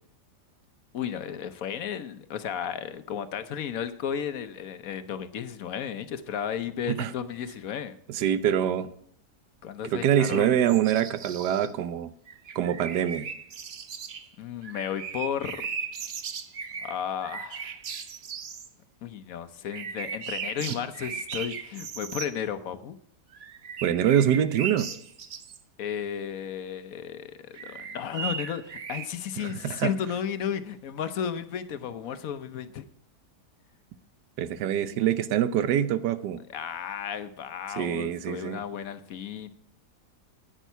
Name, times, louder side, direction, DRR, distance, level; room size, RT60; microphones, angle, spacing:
voice 1, 0.9-8.0 9.6-10.5 14.4-15.7 16.8-17.8 19.0-23.0 25.8-32.8 36.5-39.5, left 8 dB, 65° left, 11 dB, 1.1 m, -34 dB
voice 2, 8.1-8.9 9.9-12.1 12.5-13.3 23.8-24.9 29.4-29.9 34.4-36.4 37.8-38.6, right 10 dB, 80° right, 13 dB, 1.3 m, -25 dB
sound 1, 10.3-11.7 12.3-14.3 14.6-18.7 19.7-22.3 23.3-25.6 27.5-29.1, right 6 dB, 50° right, 0.8 m, -37 dB
10.5 x 9.2 x 5.5 m, 0.67 s
omnidirectional pair, 1.8 m